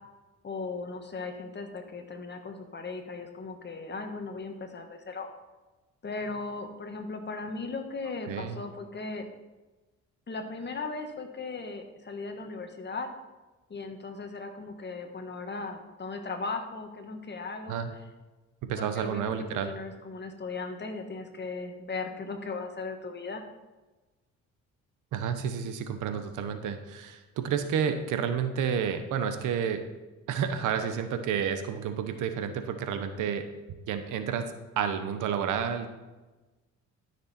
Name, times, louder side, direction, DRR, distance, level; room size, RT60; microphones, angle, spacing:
voice 1, 0.4-5.3 6.0-9.3 10.3-13.1 13.7-17.9 18.8-19.3 19.6-23.5, left 3 dB, 35° left, 5 dB, 1.5 m, -37 dB
voice 2, 8.3-8.6 17.7-17.9 18.6-19.7 25.1-29.8 30.3-33.4 33.9-35.9, right 7 dB, 85° right, 8 dB, 1.0 m, -30 dB
13.0 x 6.6 x 4.3 m, 1.2 s
cardioid pair, 90°, 30 cm